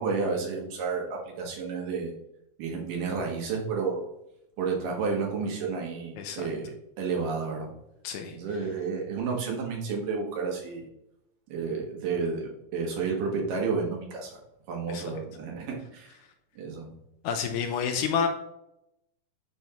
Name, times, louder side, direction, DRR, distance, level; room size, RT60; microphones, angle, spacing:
voice 1, 0.0-2.1 2.6-4.0 4.6-7.7 8.3-10.9 11.5-14.4 14.7-16.1 16.6-16.9, right 4 dB, 80° right, 0 dB, 3.0 m, -31 dB
voice 2, 6.2-6.5 8.0-8.4 14.9-15.0 17.2-18.3, left 7 dB, 75° left, 6 dB, 1.9 m, -29 dB
10.5 x 3.5 x 2.9 m, 0.82 s
omnidirectional pair, 3.7 m